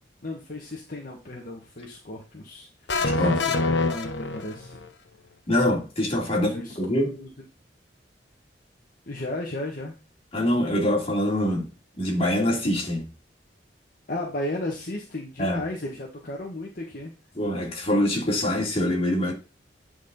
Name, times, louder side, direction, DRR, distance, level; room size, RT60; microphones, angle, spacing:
voice 1, 0.2-4.8 6.3-6.8 7.2-7.3 9.1-9.9 14.1-17.1, left 1 dB, 50° left, 1.7 m, -35 dB
sound 1, 2.9-4.9, left 3 dB, 80° left, 1.0 m, -25 dB
voice 2, 3.0-3.4 5.5-7.2 10.3-11.7 12.0-13.1 15.4-15.6 17.3-19.3, left 1 dB, 35° left, 3.0 m, -24 dB
9.5 x 4.9 x 4.1 m
head